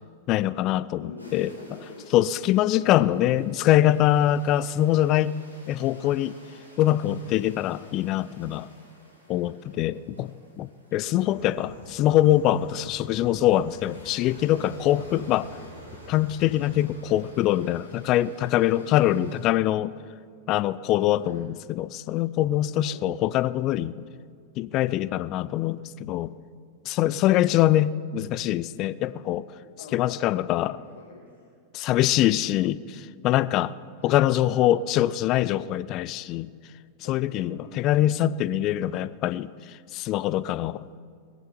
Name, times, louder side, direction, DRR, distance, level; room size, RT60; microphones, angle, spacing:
voice 1, 0.3-1.5 2.1-5.3 5.7-6.4 6.8-8.7 9.3-15.5 16.1-19.9 20.5-24.0 24.6-26.3 26.9-29.5 29.9-30.8 31.7-33.7 34.0-36.5 37.1-41.0, left 13 dB, 40° left, 18 dB, 0.4 m, -24 dB
voice 2, 1.0-2.1 2.6-3.1 11.1-11.6 15.0-15.2 18.7-19.0 21.2-21.4 22.8-23.0 29.6-30.2 30.5-31.5 34.0-34.2 37.0-37.2 37.5-37.8, left 4 dB, 65° left, 0 dB, 1.7 m, -45 dB
sound 1, 1.2-19.5, equal, 85° right, 3.0 m, -51 dB
sound 2, 11.2-16.9, right 3 dB, 60° right, 3.8 m, -49 dB
19.5 x 15.5 x 4.5 m, 2.2 s
figure-of-eight pair, 90°, 0 cm